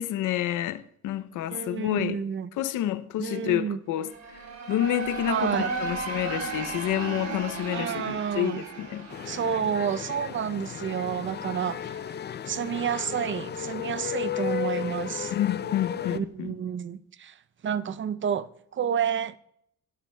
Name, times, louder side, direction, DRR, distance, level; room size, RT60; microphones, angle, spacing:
voice 1, 0.0-2.2 2.6-4.1 4.7-9.1 15.3-16.5, left 12 dB, 85° left, 0.7 m, -29 dB
voice 2, 1.5-2.5 3.2-3.8 5.3-5.7 7.7-8.6 9.3-12.0 12.5-15.3 16.1-17.3 17.6-19.4, right 8 dB, 40° right, 0.6 m, -30 dB
sound 1, 4.0-10.8, right 4 dB, 60° right, 3.6 m, -35 dB
sound 2, 9.1-16.2, left 9 dB, 35° left, 0.4 m, -34 dB
16.5 x 11.5 x 2.3 m
cardioid pair, 90°, 30 cm